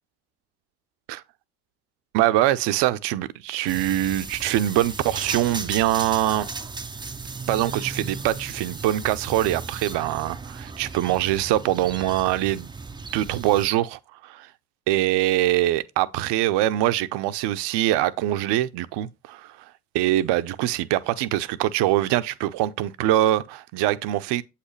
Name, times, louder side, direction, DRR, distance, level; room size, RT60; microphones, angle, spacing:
voice 1, 2.1-6.5 7.5-12.7 13.1-14.5 14.9-19.6 19.9-24.4, right 14 dB, 65° right, 0.7 m, -23 dB
sound 1, 3.7-13.7, right 4 dB, 10° right, 0.5 m, -36 dB
7.9 x 5.8 x 3.2 m
hypercardioid pair, 50°, 45 cm